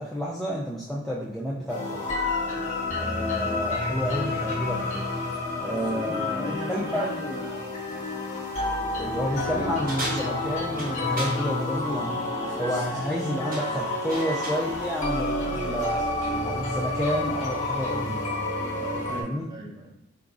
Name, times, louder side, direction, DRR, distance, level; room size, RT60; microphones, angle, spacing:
voice 1, 0.0-2.0 3.0-5.0 5.6-7.1 9.0-12.2 12.6-16.0 16.4-18.2 19.2-19.5, equal, ahead, -6 dB, 0.3 m, -30 dB
sound 1, 1.7-19.2, left 2 dB, 40° left, 0.9 m, -29 dB
voice 2, 5.7-7.6 18.7-20.0, equal, 20° right, -3 dB, 0.9 m, -37 dB
Male speech man speaking, 9.1-12.1 12.4-16.5, left 1 dB, 80° right, 1.5 m, -41 dB
sound 2, 9.9-11.4 12.9-13.2 13.5-14.7, right 2 dB, 45° right, 1.0 m, -35 dB
3.9 x 3.5 x 2.5 m, 0.84 s
head